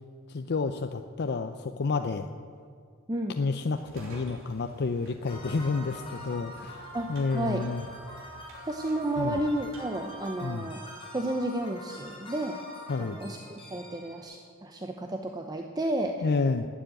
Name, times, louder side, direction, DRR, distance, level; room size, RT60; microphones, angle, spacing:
voice 1, 0.3-2.3 3.4-7.8 9.2-9.4 10.4-10.7 12.9-13.2 16.2-16.7, left 4 dB, 50° left, 7 dB, 0.5 m, -30 dB
voice 2, 3.1-3.4 6.9-7.7 8.6-10.8 11.1-12.6 13.0-16.3, right 1 dB, 20° right, 3 dB, 0.7 m, -32 dB
sound 1, 3.8-11.0, right 1 dB, 65° right, 3.6 m, -51 dB
sound 2, 5.2-14.2, left 1 dB, 25° left, 3.8 m, -44 dB
12.5 x 9.3 x 8.7 m, 2.1 s
head